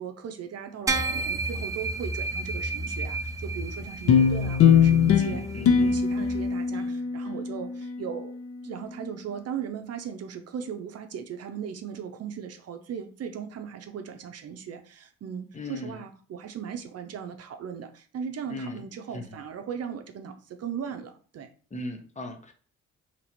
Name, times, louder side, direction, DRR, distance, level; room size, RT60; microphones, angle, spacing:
voice 1, 0.0-5.4 5.8-8.4 8.6-21.5, right 7 dB, 55° right, 7 dB, 0.6 m, -38 dB
sound 1, 0.9-6.5, right 2 dB, 10° right, 0.5 m, -32 dB
sound 2, 4.1-8.7, left 7 dB, 50° left, 0.5 m, -22 dB
voice 2, 5.2-6.0 15.5-16.0 18.5-18.9 19.1-19.4 21.7-22.5, left 1 dB, 25° left, 6 dB, 0.8 m, -37 dB
2.9 x 2.9 x 4.2 m, 0.41 s
cardioid pair, 90°, 30 cm